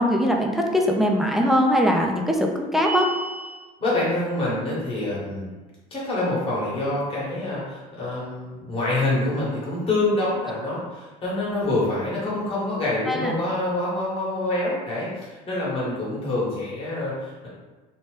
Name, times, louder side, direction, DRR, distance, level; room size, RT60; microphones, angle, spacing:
voice 1, 0.0-3.1 13.1-13.3, equal, ahead, 0 dB, 0.3 m, -21 dB
sound 1, 2.8-3.7, right 3 dB, 80° right, 0.4 m, -30 dB
voice 2, 3.8-5.5 5.9-17.5, left 2 dB, 35° left, -6 dB, 1.3 m, -26 dB
2.8 x 2.2 x 3.2 m, 1.2 s
supercardioid pair, 110°, 17 cm